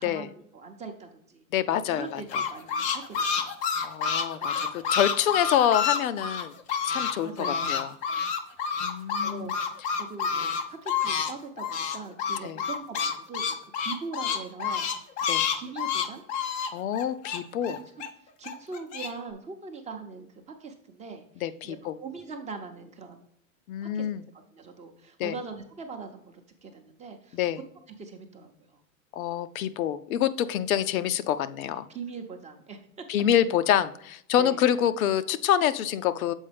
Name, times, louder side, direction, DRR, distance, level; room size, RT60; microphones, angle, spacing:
voice 1, 0.0-1.4 1.9-3.5 4.4-4.9 7.1-7.7 8.1-8.2 8.6-14.9 15.3-16.2 17.7-17.8 18.4-21.2 21.6-23.2 23.8-24.1 24.5-27.4 28.0-28.8 30.7-30.8 31.9-32.8 34.4-34.6, right 4 dB, 15° right, 5 dB, 0.7 m, -41 dB
voice 2, 1.5-2.2 3.8-6.5 6.8-7.9 8.8-9.5 12.4-12.6 15.3-15.5 16.7-17.8 21.4-22.0 23.7-24.2 25.2-25.3 27.3-27.6 29.2-31.8 33.1-36.3, left 10 dB, 75° left, 12 dB, 0.6 m, -26 dB
sound 1, 2.0-7.1 7.4-11.3 11.6-18.1 18.4-19.1, left 6 dB, 20° left, 0.4 m, -28 dB
7.1 x 4.6 x 3.4 m, 0.70 s
hypercardioid pair, 130°, 42 cm